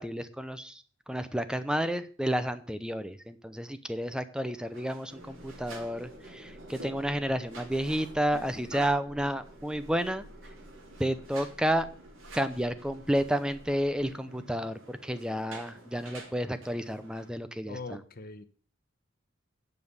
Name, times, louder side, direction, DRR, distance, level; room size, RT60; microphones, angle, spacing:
voice 1, 0.0-10.3 11.0-11.9 12.3-18.0, equal, 5° right, 12 dB, 0.6 m, -31 dB
sound 1, 4.6-17.3, right 2 dB, 80° right, 2.8 m, -50 dB
sound 2, 5.1-14.1, equal, 30° right, 1.6 m, -51 dB
voice 2, 17.7-18.4, left 3 dB, 45° left, 10 dB, 0.9 m, -41 dB
9.3 x 5.4 x 8.0 m, 0.43 s
head